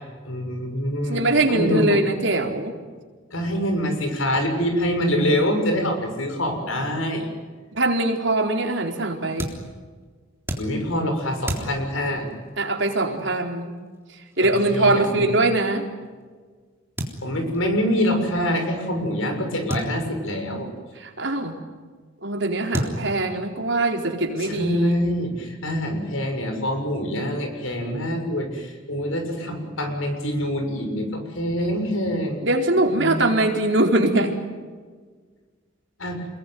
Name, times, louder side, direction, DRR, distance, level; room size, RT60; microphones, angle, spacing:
voice 1, 0.3-2.0 3.3-7.3 10.6-12.3 14.4-15.3 17.2-20.7 24.4-32.4 32.8-33.4 36.0-36.2, equal, 85° left, 5 dB, 6.9 m, -25 dB
voice 2, 1.1-2.7 7.7-9.5 12.6-13.7 14.4-15.9 21.0-21.5 22.2-25.0 32.4-34.4, right 2 dB, 65° right, 2 dB, 4.3 m, -22 dB
sound 1, 8.0-16.3 17.0-17.7 18.0-18.1 18.3-18.4 19.7-20.8 22.0-22.1 22.7-23.6, equal, 10° right, 3.7 m, -34 dB
28.5 x 21.5 x 9.5 m, 1.5 s
head